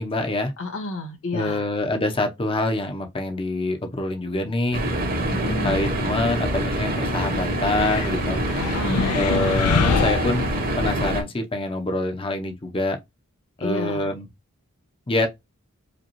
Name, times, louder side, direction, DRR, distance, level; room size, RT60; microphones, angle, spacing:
voice 1, 0.0-0.5 1.3-4.8 5.6-8.4 9.1-10.5 10.8-13.0 13.6-14.2 15.1-15.3, left 2 dB, 25° left, 0.7 m, -25 dB
voice 2, 0.6-1.7 5.3-5.9 8.6-9.2 13.6-14.1, left 2 dB, 65° left, 1.5 m, -31 dB
sound 1, 4.7-11.2, right 1 dB, 40° right, 1.0 m, -25 dB
sound 2, 7.6-11.0, left 6 dB, 85° left, 0.4 m, -26 dB
5.1 x 2.3 x 2.9 m
head